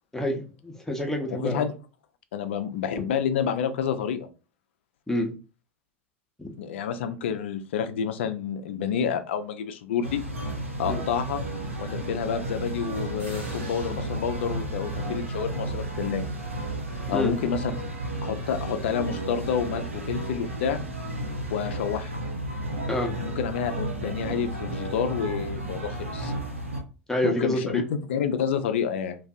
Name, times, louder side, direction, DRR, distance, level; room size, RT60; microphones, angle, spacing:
voice 1, 0.1-1.7 5.1-5.3 6.4-6.5 10.9-11.0 17.1-17.3 22.9-23.1 27.1-27.8, left 1 dB, 5° left, 1 dB, 0.6 m, -28 dB
voice 2, 1.3-1.7 2.3-4.3 6.6-10.2 10.8-11.4 11.8-16.2 17.1-17.7 18.2-20.8 21.5-22.1 23.2-26.3 27.2-29.2, left 7 dB, 65° left, 10 dB, 0.4 m, -29 dB
sound 1, 10.0-26.8, right 1 dB, 85° right, 0.7 m, -33 dB
sound 2, 10.7-17.7, right 2 dB, 70° right, 1.2 m, -47 dB
2.4 x 2.3 x 2.4 m, 0.33 s
figure-of-eight pair, 85°, 7 cm